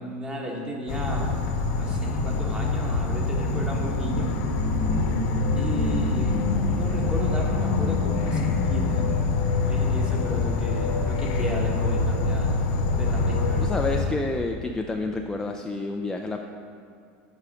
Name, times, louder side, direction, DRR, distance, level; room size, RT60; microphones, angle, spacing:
voice 1, 0.0-1.3 1.8-4.3 5.6-6.3 6.7-9.3 9.7-12.5 12.9-13.7, equal, 15° right, -1 dB, 1.4 m, -33 dB
Insect / Frog, 0.9-14.0, left 3 dB, 65° left, 1.0 m, -25 dB
voice 2, 13.6-16.4, left 2 dB, 10° left, 3 dB, 0.4 m, -29 dB
8.2 x 5.0 x 6.1 m, 2.3 s
supercardioid pair, 120°, 6 cm